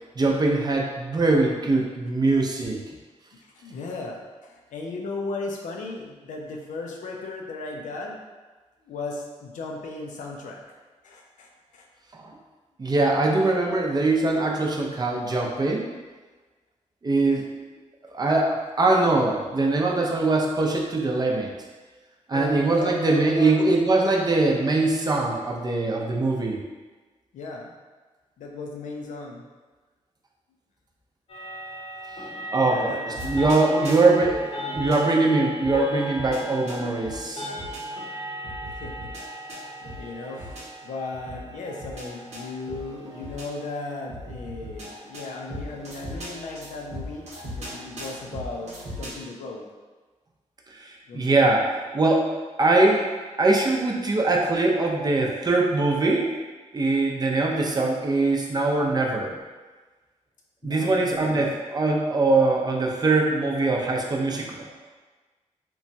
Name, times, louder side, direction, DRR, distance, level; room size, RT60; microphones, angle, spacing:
voice 1, 0.2-2.8 12.8-15.9 17.0-17.5 18.1-21.5 22.3-26.6 32.5-33.0 33.2-37.5 50.7-52.3 52.6-53.1 53.4-56.3 56.7-59.4 60.6-64.7, right 2 dB, 30° right, -1 dB, 0.5 m, -22 dB
voice 2, 3.4-8.2 8.8-10.6 11.0-11.9 22.3-23.6 27.3-27.7 28.4-29.5 32.6-34.0 38.7-39.1 40.0-48.7 49.0-49.6 51.1-51.2 60.6-61.6, left 3 dB, 90° left, 0 dB, 0.4 m, -36 dB
sound 1, 31.3-48.5, equal, 50° left, 0.7 m, -38 dB
sound 2, 33.1-35.0 35.6-37.8 38.4-40.6 41.3-43.5 44.1-49.1, equal, 65° right, 0.8 m, -39 dB
3.0 x 2.2 x 2.6 m, 1.3 s
cardioid pair, 80°, 13 cm